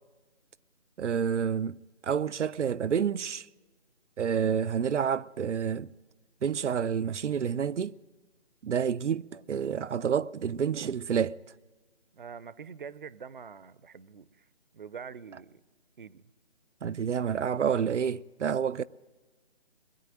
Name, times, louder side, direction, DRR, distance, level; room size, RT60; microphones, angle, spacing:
voice 1, 1.0-1.8 2.0-3.5 4.2-5.9 6.4-8.0 8.6-11.4 16.8-18.8, right 7 dB, 85° right, 0.6 m, -29 dB
voice 2, 12.1-14.5 14.7-15.6 16.0-16.2, right 6 dB, 45° right, 0.6 m, -45 dB
21.0 x 9.1 x 7.5 m
figure-of-eight pair, 165°, 35 cm